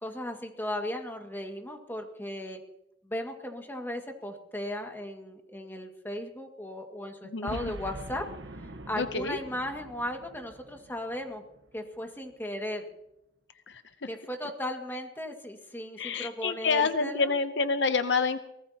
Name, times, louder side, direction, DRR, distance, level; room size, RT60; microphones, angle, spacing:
voice 1, 0.0-2.6 3.0-8.3 8.9-11.4 11.7-12.9 14.1-17.3, left 1 dB, 10° left, 3 dB, 2.0 m, -36 dB
voice 2, 7.3-7.7 9.0-9.4 13.7-13.8 16.0-18.4, left 4 dB, 70° left, 10 dB, 0.8 m, -28 dB
Boom, 7.5-11.9, right 1 dB, 75° right, 1.2 m, -44 dB
23.0 x 19.5 x 2.9 m, 0.88 s
head